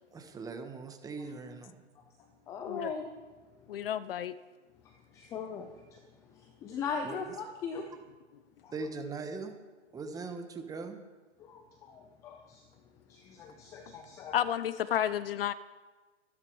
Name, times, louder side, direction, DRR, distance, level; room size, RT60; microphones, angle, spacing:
voice 1, 0.1-1.8 7.0-7.2 8.7-9.5 9.9-11.0, right 4 dB, 10° right, 6 dB, 1.3 m, -40 dB
voice 2, 2.5-3.1 4.8-6.0 6.3-8.0 8.6-8.7 11.4-12.7 13.1-14.4, left 5 dB, 10° left, 6 dB, 0.4 m, -40 dB
voice 3, 3.7-4.4 14.3-15.5, left 10 dB, 50° left, 16 dB, 0.6 m, -31 dB
24.5 x 10.0 x 4.8 m, 1.3 s
hypercardioid pair, 140°, 37 cm